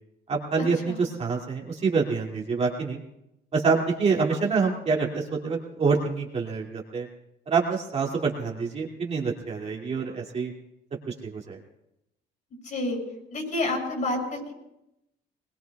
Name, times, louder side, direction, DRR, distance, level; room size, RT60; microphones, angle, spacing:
voice 1, 0.3-3.0 3.5-7.1 7.5-10.5 11.1-11.6, right 4 dB, 40° right, -1 dB, 2.4 m, -26 dB
voice 2, 12.6-13.0 13.3-14.5, left 2 dB, 50° left, 1 dB, 7.2 m, -29 dB
22.0 x 21.0 x 2.3 m, 0.85 s
cardioid pair, 110°, 17 cm